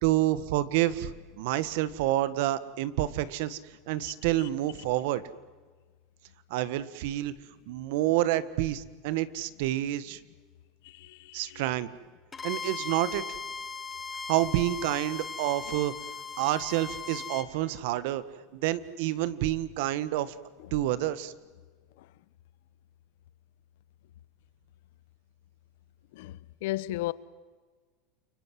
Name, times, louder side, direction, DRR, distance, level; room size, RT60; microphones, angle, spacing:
voice 1, 0.0-3.6 3.9-5.2 6.5-7.3 7.7-10.2 11.3-11.9 12.4-13.2 14.3-15.9 16.4-18.2 18.5-20.3 20.7-21.3, right 14 dB, 70° right, 1.5 m, -28 dB
voice 2, 10.8-11.6 15.7-15.8 22.0-22.1 26.1-27.1, left 17 dB, 75° left, 0.9 m, -35 dB
Bowed string instrument, 12.3-17.5, left 5 dB, 20° left, 1.5 m, -38 dB
29.5 x 23.5 x 7.7 m
supercardioid pair, 125°, 0 cm